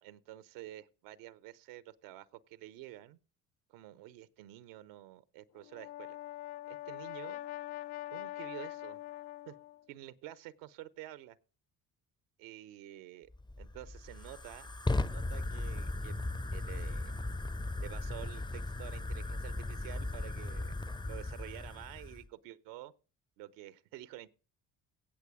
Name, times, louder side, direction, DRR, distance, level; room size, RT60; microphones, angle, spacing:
voice 1, 0.0-3.2 3.7-6.2 6.7-7.4 8.1-9.0 9.5-9.6 9.9-11.4 12.4-13.3 13.6-14.7 15.0-16.2 16.5-17.2 17.8-20.8 21.0-22.9 23.4-24.3, right 14 dB, 90° right, 0.9 m, -49 dB
Brass instrument, 5.6-9.8, left 15 dB, 70° left, 0.8 m, -43 dB
Fire, 13.3-22.3, left 2 dB, 10° left, 0.6 m, -37 dB
17.0 x 6.6 x 4.9 m
supercardioid pair, 65°, 41 cm